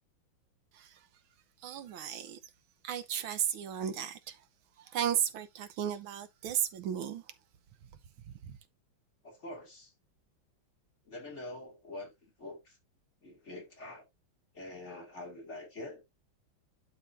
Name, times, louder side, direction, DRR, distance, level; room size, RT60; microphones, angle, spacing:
voice 1, 1.6-2.4 2.8-4.4 4.8-7.3 8.3-8.6, right 9 dB, 90° right, 1.7 m, -34 dB
voice 2, 9.2-9.9 11.1-12.1 12.4-12.8 13.2-14.0 14.5-16.0, left 2 dB, 35° left, 2.6 m, -45 dB
11.5 x 4.8 x 2.6 m
omnidirectional pair, 2.2 m